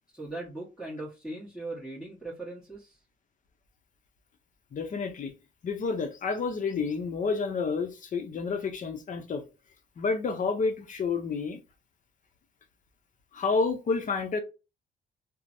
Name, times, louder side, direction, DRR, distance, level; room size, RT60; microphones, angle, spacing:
voice 1, 0.1-3.0, right 2 dB, ahead, 1.1 m, -39 dB
voice 2, 4.7-5.3 5.6-9.4 10.0-11.6 13.3-14.4, left 4 dB, 40° left, 0.6 m, -29 dB
3.1 x 2.0 x 2.6 m
cardioid pair, 90°, 20 cm